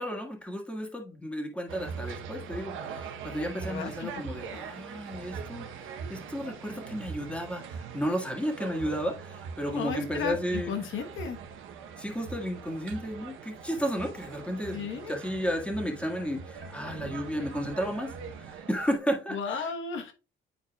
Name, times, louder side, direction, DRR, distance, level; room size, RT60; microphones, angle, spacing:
voice 1, 0.0-10.7 12.0-19.7, equal, 5° left, 1 dB, 1.7 m, -33 dB
sound 1, 1.7-19.0, right 6 dB, 85° right, 0.9 m, -42 dB
voice 2, 3.6-4.1 4.5-4.6 9.7-11.4 14.7-15.2 19.3-20.1, left 5 dB, 80° left, 5 dB, 1.2 m, -34 dB
9.8 x 4.5 x 2.3 m, 0.33 s
cardioid pair, 90°, 20 cm